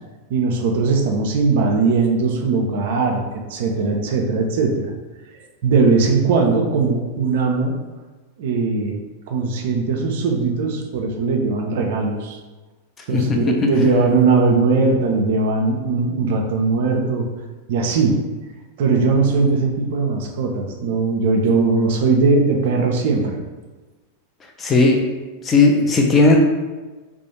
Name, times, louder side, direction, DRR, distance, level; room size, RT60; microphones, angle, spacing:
voice 1, 0.3-4.9 5.6-7.8 8.4-12.4 13.1-17.3 17.7-18.2 18.8-23.4, right 4 dB, 55° right, 2 dB, 0.3 m, -19 dB
voice 2, 13.1-13.9 24.6-25.0 25.4-26.4, left 3 dB, 20° left, 1 dB, 0.4 m, -16 dB
2.3 x 2.1 x 2.9 m, 1.2 s
figure-of-eight pair, 90°, 0 cm